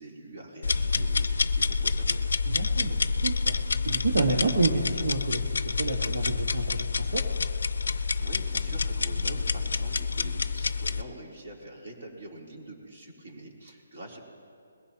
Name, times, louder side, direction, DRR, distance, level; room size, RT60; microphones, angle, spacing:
voice 1, 0.0-2.2 8.2-14.2, right 1 dB, 55° right, -2 dB, 3.4 m, -44 dB
sound 1, 0.6-11.0, left 4 dB, 80° left, 0.5 m, -28 dB
voice 2, 2.4-3.6 3.8-7.3, right 3 dB, 80° right, 0 dB, 1.5 m, -29 dB
21.5 x 15.5 x 2.9 m, 2.5 s
hypercardioid pair, 165°, 0 cm